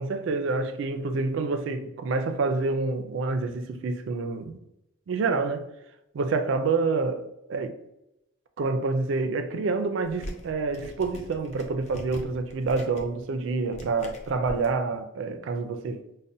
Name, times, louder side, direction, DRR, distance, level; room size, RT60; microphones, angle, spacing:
voice 1, 0.0-4.6 5.1-5.7 6.1-7.7 8.6-16.0, right 3 dB, 70° right, 0.4 m, -28 dB
Plastic Bottle Cap, 10.0-14.7, equal, 35° left, 0.4 m, -42 dB
5.2 x 2.1 x 2.6 m
head